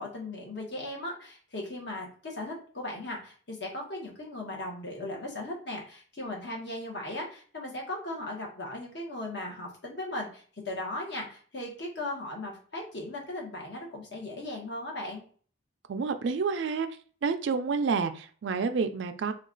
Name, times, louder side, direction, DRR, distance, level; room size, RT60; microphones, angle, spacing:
voice 1, 0.0-15.2, left 1 dB, 55° left, -1 dB, 1.1 m, -37 dB
voice 2, 15.9-16.9 17.2-19.3, right 5 dB, 60° right, 9 dB, 0.3 m, -29 dB
3.0 x 2.3 x 3.7 m, 0.43 s
head